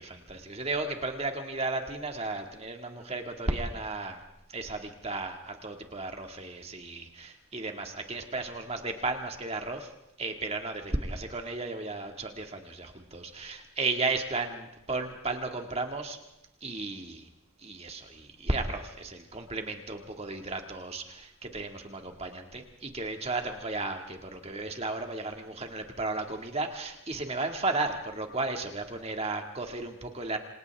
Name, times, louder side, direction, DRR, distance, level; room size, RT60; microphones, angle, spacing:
voice 1, 0.0-4.2 4.5-9.9 10.2-16.2 16.6-17.3 17.6-30.4, right 3 dB, 30° right, 4 dB, 2.1 m, -34 dB
28.5 x 26.5 x 3.6 m, 0.85 s
head